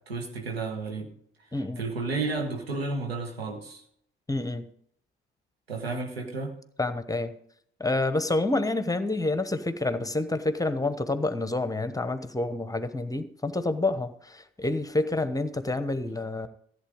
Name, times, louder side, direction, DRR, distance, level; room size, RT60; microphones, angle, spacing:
voice 1, 0.1-1.1 1.8-3.8 5.7-6.5, right 3 dB, 85° right, 2 dB, 1.5 m, -32 dB
voice 2, 1.5-1.8 4.3-4.7 6.8-7.3 7.8-16.5, left 2 dB, 10° left, 11 dB, 1.1 m, -28 dB
14.5 x 7.9 x 5.2 m, 0.65 s
figure-of-eight pair, 45°, 30 cm